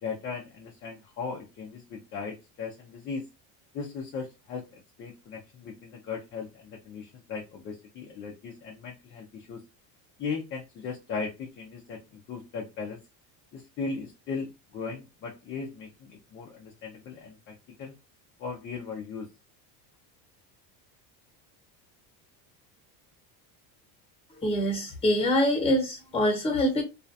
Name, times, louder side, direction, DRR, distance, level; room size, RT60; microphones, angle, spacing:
voice 1, 0.0-3.3 3.7-9.6 10.2-13.0 13.5-17.9 18.4-19.3, left 5 dB, 30° left, 0.4 m, -37 dB
voice 2, 24.4-26.8, equal, 15° left, 1.0 m, -25 dB
2.4 x 2.1 x 2.6 m
cardioid pair, 150°, 44 cm